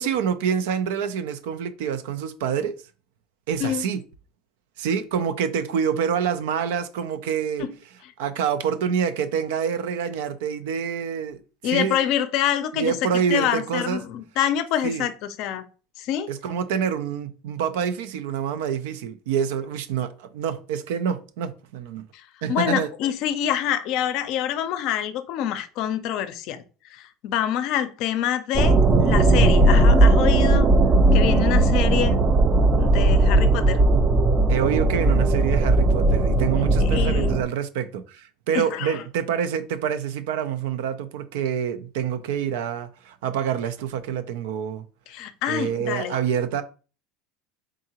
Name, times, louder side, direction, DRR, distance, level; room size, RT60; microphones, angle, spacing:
voice 1, 0.0-2.8 3.5-4.0 4.8-7.7 8.2-12.0 12.7-14.0 14.8-15.1 16.3-22.0 22.4-22.9 34.5-44.8 45.5-46.6, right 7 dB, 85° right, 0.4 m, -27 dB
voice 2, 11.6-15.6 16.0-16.3 22.5-26.6 26.9-30.7 31.1-32.2 32.8-33.8 36.8-37.4 38.5-39.0 45.1-46.2, left 10 dB, 60° left, 0.5 m, -26 dB
sound 1, 28.5-37.4, right 2 dB, 25° right, 0.5 m, -18 dB
3.7 x 3.6 x 2.9 m
supercardioid pair, 120°, 0 cm